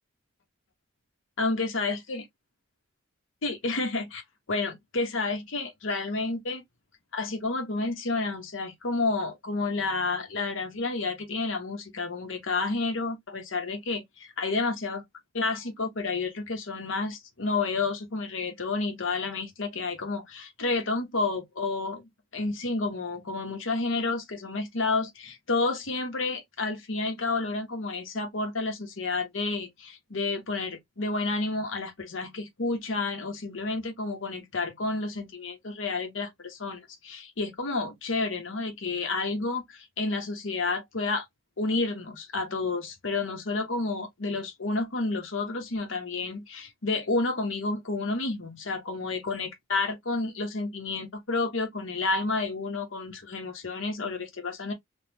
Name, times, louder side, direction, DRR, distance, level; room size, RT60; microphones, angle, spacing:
voice 1, 1.4-2.2 3.4-4.2 4.5-6.6 7.1-15.0 15.3-41.2 41.6-54.7, left 3 dB, 85° left, 1.0 m, -30 dB
3.5 x 2.4 x 2.9 m
head